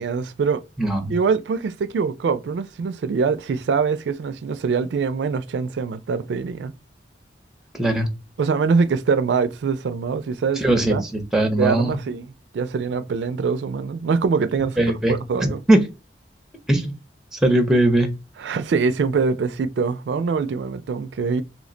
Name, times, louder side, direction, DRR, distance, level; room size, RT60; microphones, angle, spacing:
voice 1, 0.0-0.6 1.1-6.7 8.4-11.0 11.6-15.6 18.4-21.4, right 5 dB, 70° right, 0.3 m, -23 dB
voice 2, 0.8-1.1 7.7-8.1 10.6-12.0 14.8-15.2 15.4-15.8 16.7-16.9 17.3-18.1, right 1 dB, 5° right, 0.6 m, -19 dB
3.1 x 2.1 x 3.7 m
head